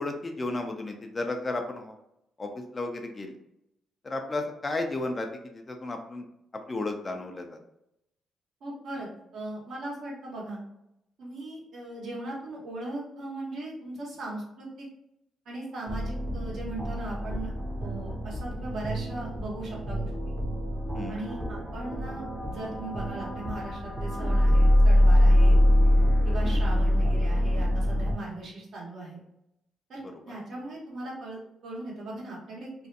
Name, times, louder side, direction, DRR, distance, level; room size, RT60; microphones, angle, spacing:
voice 1, 0.0-2.0 2.4-3.3 4.0-6.3 6.7-7.6 20.9-21.2 26.4-26.8, left 2 dB, 30° left, 4 dB, 0.4 m, -33 dB
voice 2, 8.6-10.6 11.2-14.9 15.4-17.5 17.8-20.3 21.1-25.6 26.2-29.2 29.9-32.7, right 2 dB, 60° right, -4 dB, 1.1 m, -38 dB
sound 1, 15.9-28.1, left 1 dB, 15° right, 0.7 m, -24 dB
2.5 x 2.2 x 2.6 m, 0.82 s
cardioid pair, 90°, 0 cm